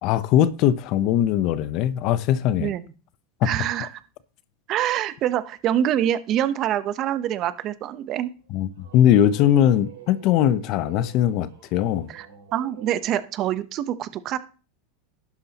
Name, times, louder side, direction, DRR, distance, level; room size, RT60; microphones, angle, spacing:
voice 1, 0.0-2.7 8.5-12.1, left 11 dB, 50° left, 0.7 m, -20 dB
voice 2, 3.4-4.0 4.7-8.3 12.1-12.3 12.5-14.4, right 11 dB, 45° right, 0.9 m, -25 dB
sound 1, 8.4-13.3, right 9 dB, 85° right, 5.7 m, -48 dB
11.5 x 9.6 x 2.9 m
supercardioid pair, 120°, 0 cm